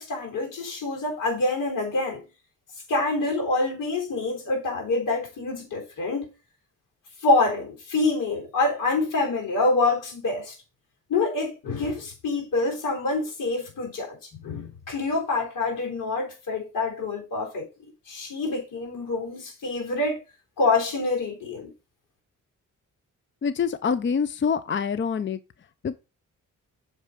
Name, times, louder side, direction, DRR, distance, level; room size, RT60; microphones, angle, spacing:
voice 1, 0.0-2.3 2.9-6.3 7.2-10.6 11.1-14.2 14.4-17.7 18.1-20.2 20.6-21.7, left 3 dB, 85° left, 3.6 m, -26 dB
voice 2, 23.4-25.4 25.8-26.0, left 6 dB, 35° left, 0.6 m, -25 dB
6.6 x 4.9 x 5.1 m
cardioid pair, 75°, 32 cm